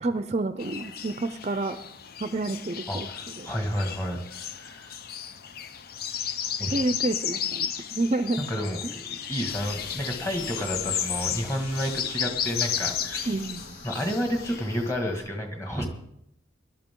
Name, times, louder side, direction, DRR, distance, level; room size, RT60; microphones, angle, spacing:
voice 1, 0.0-1.8 2.2-3.5 6.7-8.4 8.8-8.9 13.3-13.6, right 2 dB, 35° right, 10 dB, 0.5 m, -29 dB
sound 1, 0.6-14.9, left 8 dB, 50° left, 0.6 m, -34 dB
voice 2, 2.9-4.9 6.6-6.8 8.4-13.4 13.8-15.9, equal, 15° left, 3 dB, 1.9 m, -31 dB
sound 2, 9.5-15.3, left 3 dB, 80° left, 1.9 m, -44 dB
18.5 x 11.5 x 3.8 m, 0.77 s
head